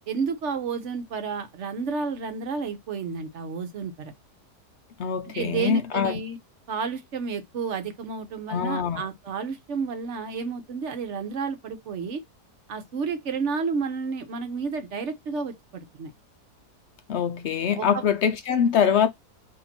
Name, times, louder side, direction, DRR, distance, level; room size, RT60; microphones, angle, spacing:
voice 1, 0.1-4.1 5.3-6.4 6.7-12.2 12.7-16.1 17.8-18.0, right 5 dB, 55° right, 0.9 m, -31 dB
voice 2, 5.0-6.2 8.5-9.0 17.1-19.1, left 7 dB, 80° left, 0.6 m, -24 dB
4.1 x 2.9 x 4.2 m
omnidirectional pair, 1.8 m